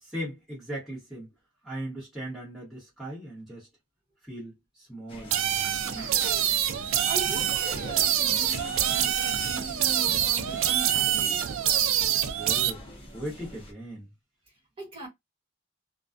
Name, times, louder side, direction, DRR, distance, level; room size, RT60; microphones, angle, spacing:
voice 1, 0.0-1.3 1.6-3.7 4.2-6.4 12.2-12.8 13.1-14.1, equal, ahead, 1.1 m, -39 dB
sound 1, 5.1-13.7, left 1 dB, 25° left, 0.8 m, -43 dB
sound 2, 5.3-12.7, right 10 dB, 70° right, 0.4 m, -26 dB
voice 2, 6.8-11.5 14.8-15.1, right 1 dB, 30° right, 1.2 m, -40 dB
2.3 x 2.2 x 2.5 m
head